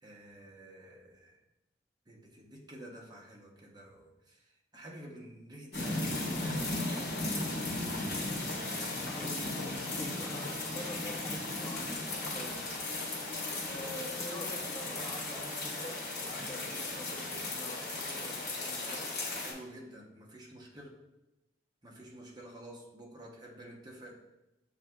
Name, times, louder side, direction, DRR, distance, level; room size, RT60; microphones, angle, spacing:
voice 1, 0.0-1.4 2.1-6.0 6.4-7.0 12.3-12.7 19.3-21.0 21.8-24.1, right 1 dB, 20° right, -2 dB, 0.7 m, -50 dB
sound 1, 5.7-19.5, left 2 dB, 60° left, 1.0 m, -36 dB
voice 2, 9.1-12.0 13.7-19.1, equal, 25° left, -3 dB, 0.8 m, -46 dB
7.0 x 2.6 x 2.2 m, 0.98 s
head